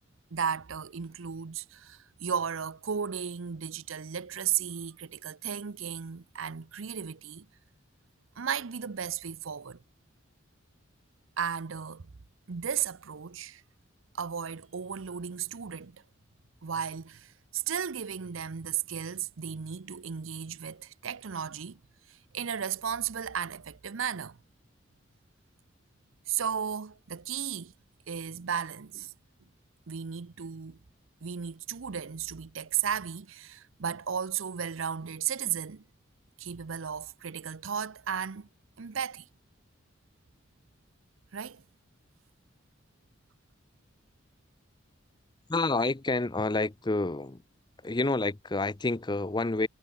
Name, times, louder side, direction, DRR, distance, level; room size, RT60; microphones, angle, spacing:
voice 1, 0.3-7.5 8.4-9.8 11.4-12.1 12.5-13.6 14.1-16.0 16.6-21.8 22.1-24.4 26.3-27.7 28.1-29.1 29.9-30.8 31.2-35.8 36.4-38.5 38.8-39.3 41.3-41.6, right 8 dB, 85° right, 0.7 m, -34 dB
voice 2, 45.5-47.4 47.8-49.7, left 2 dB, 20° left, 0.6 m, -28 dB
head